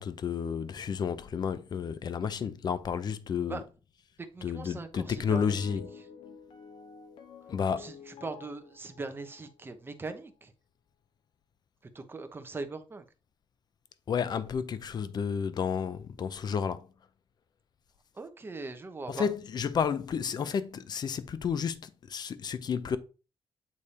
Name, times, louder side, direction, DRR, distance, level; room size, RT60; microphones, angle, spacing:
voice 1, 0.0-3.6 4.4-5.8 7.5-7.9 14.1-16.9 19.1-23.0, left 7 dB, 50° left, 0.6 m, -31 dB
voice 2, 4.3-6.1 7.7-10.5 11.9-13.1 18.1-19.3, right 3 dB, 25° right, 1.0 m, -41 dB
sound 1, 5.0-10.0, left 6 dB, 80° left, 1.0 m, -49 dB
8.6 x 3.4 x 4.2 m
wide cardioid pair, 145°, 9 cm